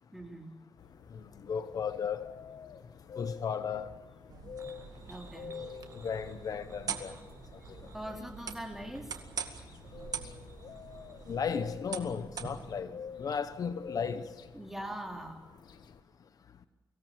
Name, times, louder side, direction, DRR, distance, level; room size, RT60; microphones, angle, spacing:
voice 1, 0.1-0.5 5.1-5.5 7.9-9.2 14.5-15.4, right 1 dB, 5° right, 3.6 m, -42 dB
sound 1, 0.8-16.0, left 7 dB, 75° left, 1.4 m, -49 dB
voice 2, 1.1-2.3 3.2-3.9 6.0-7.2 11.3-14.3, left 6 dB, 55° left, 1.1 m, -35 dB
sound 2, 4.3-12.8, right 7 dB, 65° right, 2.1 m, -44 dB
sound 3, 4.6-11.5, right 3 dB, 40° right, 6.4 m, -59 dB
24.5 x 17.5 x 7.6 m
wide cardioid pair, 120°, 7 cm